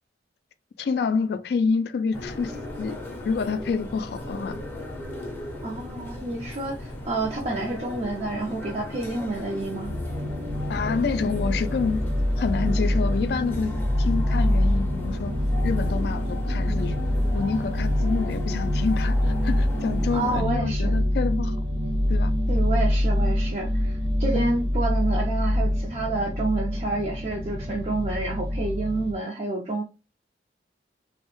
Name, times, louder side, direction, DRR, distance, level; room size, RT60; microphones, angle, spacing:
voice 1, 0.8-3.0 3.2-4.6 10.7-12.0 12.4-13.7 14.0-15.3 15.6-17.0 17.3-21.6 22.1-22.3 24.3-24.5, left 5 dB, 60° left, 0.3 m, -28 dB
sound 1, 2.1-20.4, left 1 dB, 10° left, 0.5 m, -37 dB
voice 2, 5.6-9.9 20.1-21.0 22.5-29.8, right 2 dB, 35° right, 0.4 m, -29 dB
sound 2, 9.8-29.1, left 1 dB, 60° right, 0.9 m, -25 dB
3.0 x 2.0 x 3.0 m
head